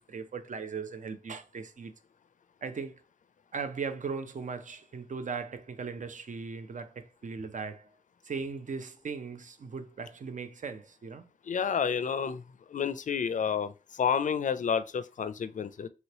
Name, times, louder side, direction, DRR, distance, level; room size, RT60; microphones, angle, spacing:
voice 1, 0.0-1.9 2.6-3.0 3.5-7.9 8.2-11.3, right 5 dB, 55° right, 0.6 m, -38 dB
voice 2, 11.5-12.4 12.7-13.7 14.0-15.9, left 7 dB, 55° left, 0.4 m, -29 dB
3.1 x 2.9 x 2.9 m
cardioid pair, 45°, 15 cm